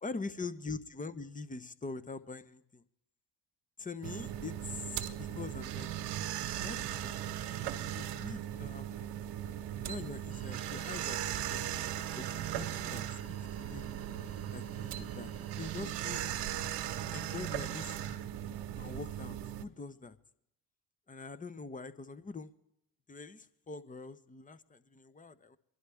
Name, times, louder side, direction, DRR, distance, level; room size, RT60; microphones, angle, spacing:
voice 1, 0.0-2.8 3.8-5.9 6.6-9.1 9.8-13.9 14.5-15.3 15.6-16.3 17.1-18.2 18.7-20.2 21.1-22.5 23.1-25.6, left 4 dB, 15° left, 13 dB, 0.9 m, -44 dB
sound 1, 4.0-19.6, right 11 dB, 65° right, 1.2 m, -38 dB
sound 2, 10.3-15.8, right 6 dB, 30° right, 1.2 m, -54 dB
24.0 x 11.0 x 3.5 m, 0.78 s
hypercardioid pair, 60°, 45 cm